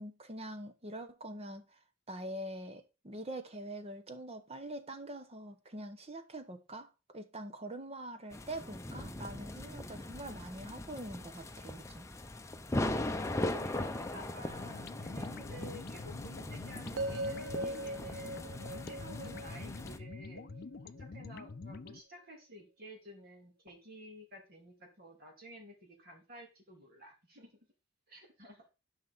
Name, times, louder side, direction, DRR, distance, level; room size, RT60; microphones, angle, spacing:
voice 1, 0.0-1.8 2.1-12.1, right 1 dB, 30° right, 1.0 m, -44 dB
sound 1, 8.3-20.0, left 1 dB, 15° left, 0.7 m, -40 dB
voice 2, 13.0-20.5 21.0-27.6 28.1-28.7, equal, 50° right, 2.9 m, -52 dB
sound 2, 14.4-22.0, left 3 dB, 50° left, 0.5 m, -46 dB
sound 3, 17.0-21.1, right 1 dB, 70° right, 0.6 m, -40 dB
11.0 x 5.9 x 4.1 m
head